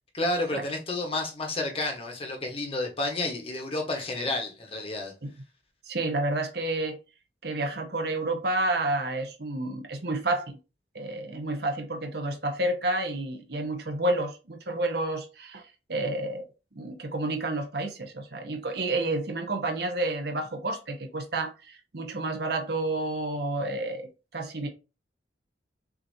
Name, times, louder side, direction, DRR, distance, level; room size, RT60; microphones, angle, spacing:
voice 1, 0.1-5.1, left 2 dB, 30° left, 1.1 m, -30 dB
voice 2, 5.9-7.0 7.4-10.6 10.9-16.5 16.8-24.7, right 2 dB, 60° right, 0.9 m, -30 dB
6.1 x 2.8 x 2.7 m
head